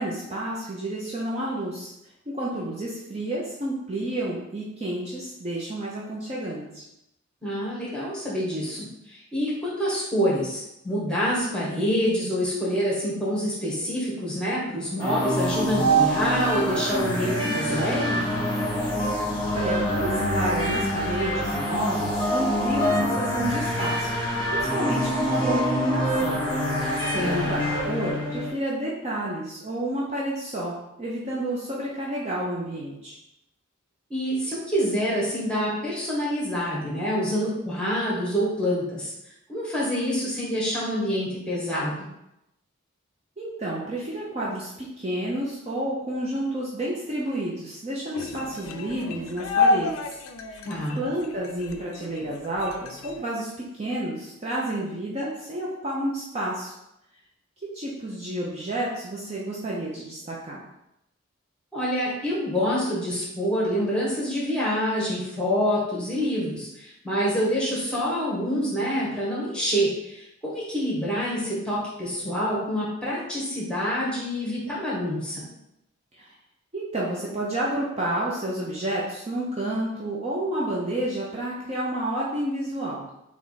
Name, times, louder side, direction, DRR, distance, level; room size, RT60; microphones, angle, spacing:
voice 1, 0.0-1.9 2.3-6.8 19.5-26.4 26.8-33.2 43.4-44.7 45.0-50.2 50.5-50.7 51.0-56.7 57.7-60.6 76.1-76.3 76.7-83.0, right 1 dB, 30° right, -5 dB, 0.6 m, -30 dB
voice 2, 7.4-18.3 27.1-27.5 34.1-39.1 39.5-42.1 50.6-51.0 61.7-75.4, equal, 5° left, -6 dB, 1.2 m, -26 dB
sound 1, 15.0-28.5, equal, 20° left, 1.3 m, -25 dB
sound 2, 48.1-53.2, left 3 dB, 80° left, 0.4 m, -29 dB
3.4 x 3.0 x 4.1 m, 0.85 s
head